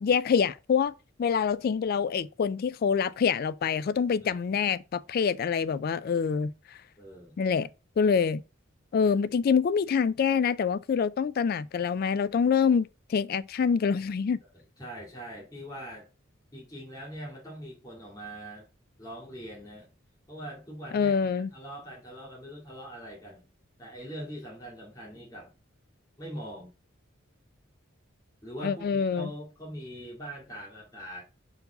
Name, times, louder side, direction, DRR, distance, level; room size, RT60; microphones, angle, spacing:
voice 1, 0.0-0.9 1.2-6.5 7.4-7.7 8.0-8.4 8.9-14.4 20.9-21.5 28.6-29.3, left 6 dB, 45° left, 0.3 m, -26 dB
voice 2, 7.0-7.4 14.5-16.1 16.5-18.7 19.0-19.9 20.3-23.4 23.8-25.5 26.2-26.7 28.4-31.2, equal, 20° left, 2.3 m, -42 dB
6.8 x 4.6 x 3.9 m
head